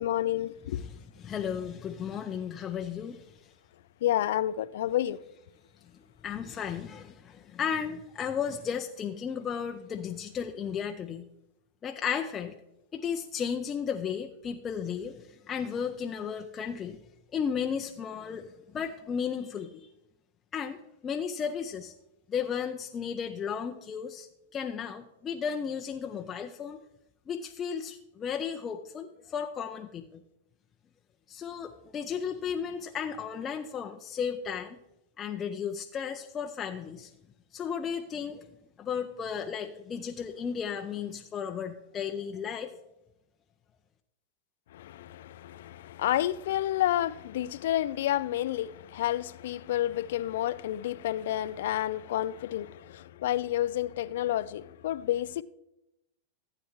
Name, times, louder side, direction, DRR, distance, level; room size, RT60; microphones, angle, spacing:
voice 1, 0.0-0.8 4.0-5.2 44.7-55.4, left 13 dB, 70° left, 0.4 m, -30 dB
voice 2, 0.7-3.2 6.2-11.3 11.8-12.6 12.9-17.0 17.3-18.5 18.7-19.9 20.5-21.9 22.3-26.8 27.3-30.2 31.3-34.8 35.2-37.1 37.5-38.5 38.8-42.7, left 7 dB, 25° left, 0.6 m, -34 dB
14.5 x 8.6 x 3.1 m
hypercardioid pair, 110°, 0 cm